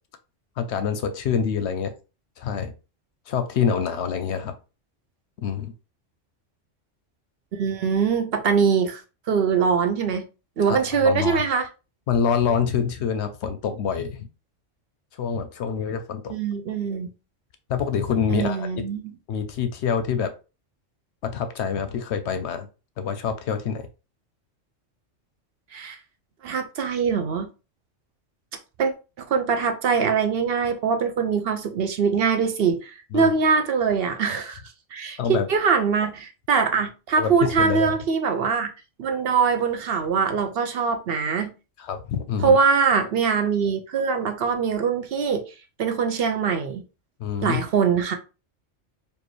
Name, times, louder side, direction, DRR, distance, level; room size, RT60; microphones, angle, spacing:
voice 1, 0.6-1.9 2.4-2.7 3.3-4.5 5.4-5.7 10.7-11.4 12.1-14.3 15.2-16.3 17.7-18.7 19.3-20.3 21.2-22.7 23.0-23.8 33.1-33.3 35.2-35.5 37.2-37.9 41.8-42.6 47.2-47.6, left 7 dB, 70° left, 0.8 m, -26 dB
voice 2, 7.5-9.0 9.3-10.2 10.6-11.7 16.3-17.1 18.3-19.1 25.7-26.0 26.4-27.5 28.8-34.6 34.9-38.7 39.0-41.5 42.4-45.4 45.8-46.8 47.4-48.1, right 6 dB, 60° right, 0.7 m, -23 dB
4.5 x 2.7 x 3.1 m
omnidirectional pair, 1.3 m